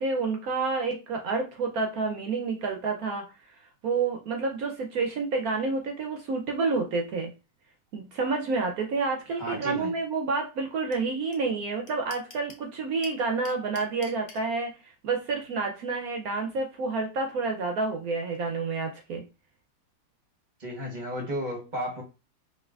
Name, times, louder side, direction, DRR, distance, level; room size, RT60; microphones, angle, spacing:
voice 1, 0.0-3.2 3.8-7.3 7.9-19.2, right 4 dB, 70° right, 3 dB, 0.9 m, -29 dB
voice 2, 9.4-9.9 20.6-22.0, equal, 40° right, 0 dB, 0.7 m, -33 dB
sound 1, 10.9-11.0 11.3-11.4 11.6-12.6 13.0-14.4, left 3 dB, 80° left, 0.4 m, -45 dB
4.7 x 2.7 x 2.3 m, 0.29 s
omnidirectional pair, 2.1 m